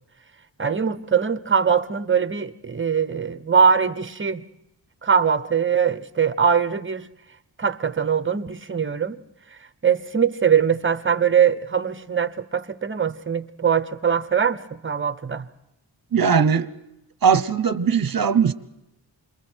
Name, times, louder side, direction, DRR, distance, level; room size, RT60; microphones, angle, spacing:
voice 1, 0.6-4.4 5.0-7.1 7.6-9.2 9.8-15.5, right 7 dB, 30° right, 0.9 m, -22 dB
voice 2, 16.1-16.7 17.2-18.5, right 6 dB, 50° right, 1.0 m, -19 dB
28.0 x 22.0 x 4.5 m
wide cardioid pair, 80°, 43 cm